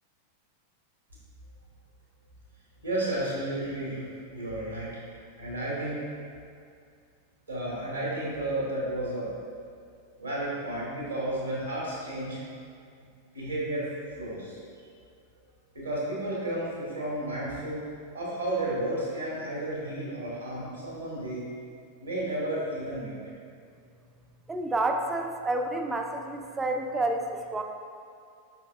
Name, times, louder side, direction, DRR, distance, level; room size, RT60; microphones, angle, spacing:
voice 1, 2.8-4.0 4.3-4.9 5.4-6.0 7.5-9.3 10.2-12.4 13.3-13.9 14.2-14.6 15.7-17.9 18.1-21.5 22.0-23.2, right 1 dB, 80° right, -7 dB, 1.5 m, -32 dB
voice 2, 24.5-27.6, right 2 dB, 15° right, 3 dB, 0.4 m, -29 dB
5.2 x 4.4 x 2.3 m, 2.3 s
figure-of-eight pair, 90°, 0 cm